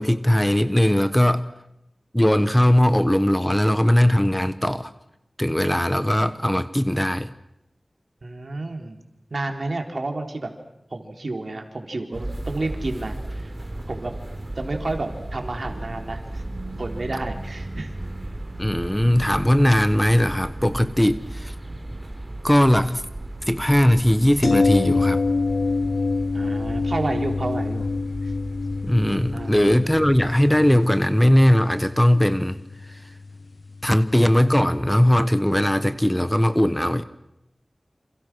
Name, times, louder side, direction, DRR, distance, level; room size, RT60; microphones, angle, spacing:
voice 1, 0.0-1.5 2.1-4.9 5.4-7.3 18.6-21.5 22.4-23.0 23.5-25.2 28.8-32.6 32.9-33.0 33.8-37.0, left 1 dB, 10° left, 12 dB, 1.2 m, -19 dB
voice 2, 8.2-9.0 9.3-10.5 10.9-13.5 13.9-14.1 14.6-16.4 16.8-17.9 26.3-27.9 28.2-28.3 29.3-29.6, right 2 dB, 65° right, 3 dB, 3.8 m, -30 dB
sound 1, 12.1-30.3, right 1 dB, 35° right, 3.9 m, -35 dB
sound 2, 24.4-34.3 34.6-34.7, left 3 dB, 80° left, 1.2 m, -26 dB
28.5 x 27.5 x 6.3 m, 0.85 s
wide cardioid pair, 65°, 0 cm